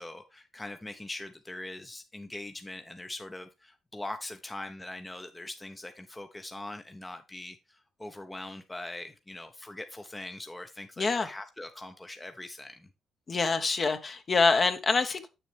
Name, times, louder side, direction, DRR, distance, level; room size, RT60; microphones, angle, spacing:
voice 1, 0.0-12.9, left 2 dB, 15° left, 6 dB, 0.8 m, -42 dB
voice 2, 11.0-11.3 13.3-15.3, left 4 dB, 40° left, 8 dB, 1.1 m, -25 dB
7.5 x 6.9 x 3.4 m, 0.26 s
cardioid pair, 90°, 0 cm